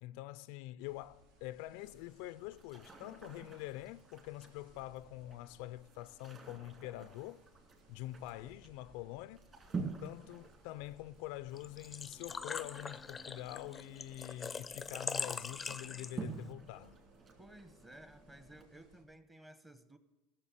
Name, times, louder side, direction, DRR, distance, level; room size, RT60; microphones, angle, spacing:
voice 1, 0.0-7.4 7.9-9.4 10.0-17.0, left 16 dB, 70° left, 0.4 m, -45 dB
sound 1, 0.8-19.0, right 1 dB, 85° right, 3.0 m, -66 dB
sound 2, 1.8-18.6, right 4 dB, 30° right, 2.6 m, -50 dB
Engine / Trickle dribble / Fill (with liquid), 11.6-16.4, left 5 dB, 15° left, 0.5 m, -42 dB
voice 2, 17.4-20.0, right 1 dB, 10° right, 1.0 m, -56 dB
15.5 x 6.9 x 7.3 m
supercardioid pair, 130°, 0 cm